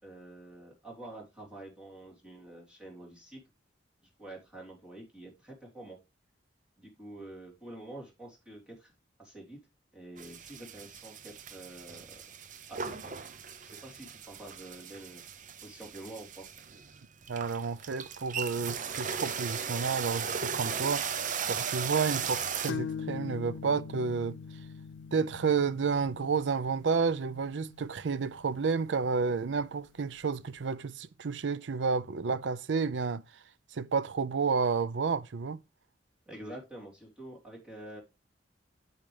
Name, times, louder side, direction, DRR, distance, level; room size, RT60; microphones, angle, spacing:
voice 1, 0.0-3.4 4.2-6.0 6.8-8.9 9.2-9.6 9.9-12.2 12.7-13.1 13.6-15.2 15.6-16.4 36.3-38.0, right 1 dB, 5° right, 3.3 m, -47 dB
sound 1, 10.2-22.7, right 7 dB, 45° right, 0.7 m, -37 dB
voice 2, 17.3-21.1 21.5-24.4 25.1-33.2 33.7-35.6, right 5 dB, 90° right, 0.5 m, -30 dB
sound 2, 22.7-30.2, left 6 dB, 80° left, 0.4 m, -43 dB
8.9 x 8.0 x 3.3 m
head